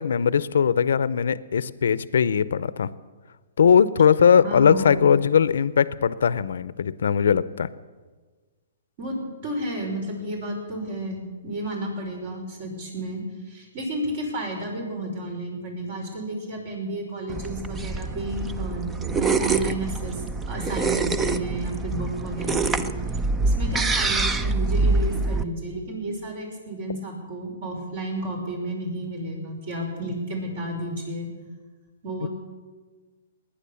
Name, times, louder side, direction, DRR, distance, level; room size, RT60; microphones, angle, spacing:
voice 1, 0.0-2.9 3.6-7.7 32.2-32.3, left 7 dB, 75° left, 17 dB, 0.6 m, -20 dB
voice 2, 4.4-5.1 9.0-9.2 9.4-22.8 23.4-31.3 32.0-32.3, right 1 dB, 50° right, 2 dB, 5.4 m, -32 dB
sound 1, 17.3-25.4, right 3 dB, 15° right, 0.6 m, -25 dB
19.0 x 10.0 x 7.0 m, 1.4 s
hypercardioid pair, 140°, 0 cm